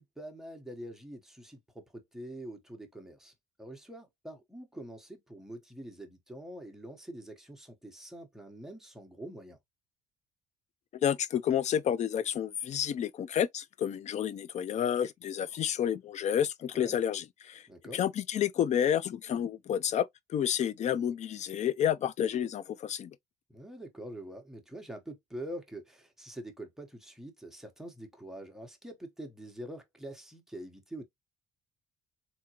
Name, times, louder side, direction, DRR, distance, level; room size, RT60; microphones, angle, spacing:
voice 1, 0.0-3.3 3.6-9.6 16.7-16.9 17.7-18.0 23.5-31.0, right 1 dB, ahead, 1.0 m, -45 dB
voice 2, 11.0-17.6 17.9-23.1, left 9 dB, 45° left, 0.4 m, -30 dB
3.6 x 2.8 x 2.9 m
cardioid pair, 110°, 17 cm